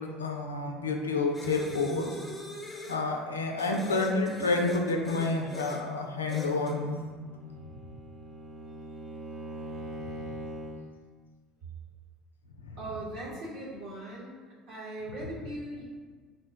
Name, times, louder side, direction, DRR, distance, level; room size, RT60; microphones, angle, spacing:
voice 1, 0.0-2.2 2.9-7.0 10.0-10.1 12.6-12.8, left 3 dB, 85° left, 2 dB, 0.4 m, -29 dB
sound 1, 1.3-3.0 3.6-5.9 6.3-6.8, left 2 dB, 15° left, 0.6 m, -41 dB
Bowed string instrument, 7.1-10.9, right 1 dB, 35° right, 0.5 m, -42 dB
voice 2, 12.8-14.4 14.7-15.8, right 1 dB, 60° right, -6 dB, 1.2 m, -39 dB
3.8 x 2.1 x 3.7 m, 1.5 s
figure-of-eight pair, 65°, 0 cm